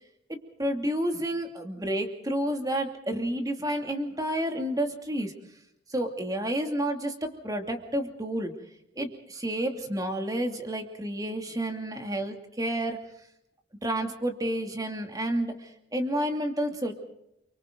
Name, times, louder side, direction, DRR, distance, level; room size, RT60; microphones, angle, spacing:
voice 1, 0.3-5.3 5.9-8.5 9.0-13.0 13.8-16.9, right 1 dB, 20° right, 4 dB, 2.7 m, -30 dB
29.5 x 24.5 x 4.0 m, 0.82 s
head